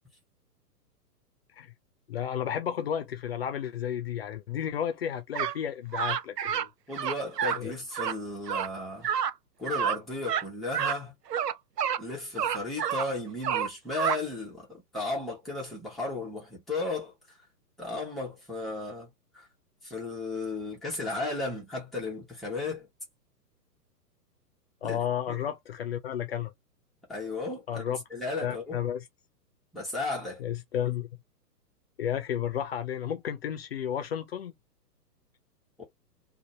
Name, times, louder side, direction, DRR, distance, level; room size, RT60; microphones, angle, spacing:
voice 1, 2.1-6.7 7.6-7.7 24.8-26.5 27.7-28.0 28.4-29.0 30.4-31.1 32.0-34.5, left 9 dB, 40° left, 0.8 m, -32 dB
sound 1, 5.3-5.6 5.9-6.7 6.9-7.6 7.9-8.2 8.5-8.7 9.0-9.3 9.7-10.0 10.2-10.4 10.7-11.0 11.3-12.0 12.4-13.1 13.4-14.2, right 8 dB, 75° right, 0.6 m, -29 dB
voice 2, 6.9-9.1 9.6-11.1 12.0-17.1 17.8-19.5 19.8-22.9 24.8-25.4 27.1-28.8 29.7-30.4 35.8-35.9, left 3 dB, ahead, 0.9 m, -35 dB
2.6 x 2.6 x 4.2 m
figure-of-eight pair, 120°, 49 cm